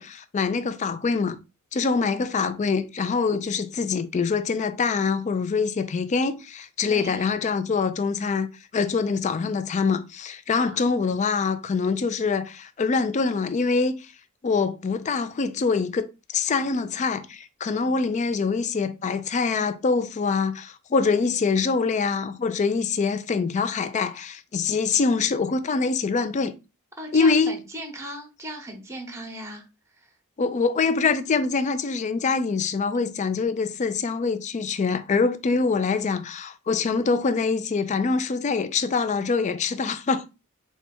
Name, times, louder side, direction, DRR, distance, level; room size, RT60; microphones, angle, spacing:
voice 1, 0.0-1.4 1.7-13.9 14.4-16.1 16.3-26.5 27.1-27.6 30.4-40.3, left 4 dB, 35° left, 0.3 m, -24 dB
voice 2, 6.8-7.3 10.6-10.8 27.0-30.1, right 1 dB, 15° right, 0.9 m, -38 dB
4.2 x 2.3 x 4.3 m
head